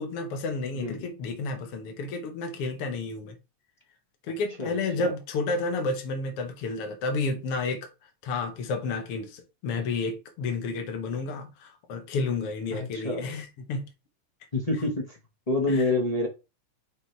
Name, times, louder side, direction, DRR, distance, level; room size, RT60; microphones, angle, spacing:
voice 1, 0.0-3.4 4.3-7.9 8.2-13.9 15.7-15.8, left 3 dB, 55° left, 2.1 m, -31 dB
voice 2, 0.7-1.1 4.6-5.1 12.7-13.3 14.5-15.2 15.5-16.3, left 2 dB, 30° left, 0.6 m, -28 dB
6.2 x 3.9 x 4.6 m
omnidirectional pair, 3.3 m